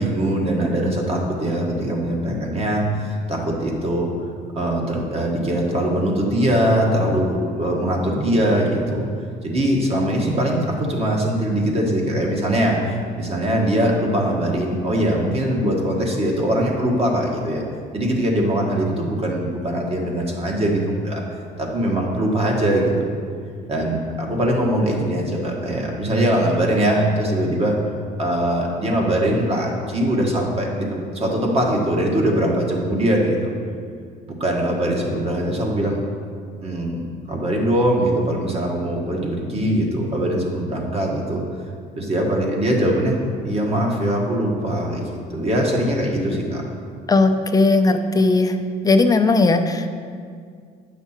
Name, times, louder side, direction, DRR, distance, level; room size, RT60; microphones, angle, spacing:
voice 1, 0.0-4.1 4.5-17.6 17.9-21.2 21.6-23.1 23.7-27.7 28.2-33.5 34.4-36.0 36.6-41.4 42.0-43.2 43.4-45.0 45.3-46.6, right 1 dB, 35° right, -1 dB, 1.5 m, -21 dB
voice 2, 47.1-48.6 48.8-49.9, left 3 dB, 20° left, 7 dB, 0.6 m, -17 dB
9.1 x 5.8 x 4.4 m, 2.1 s
cardioid pair, 110°, 17 cm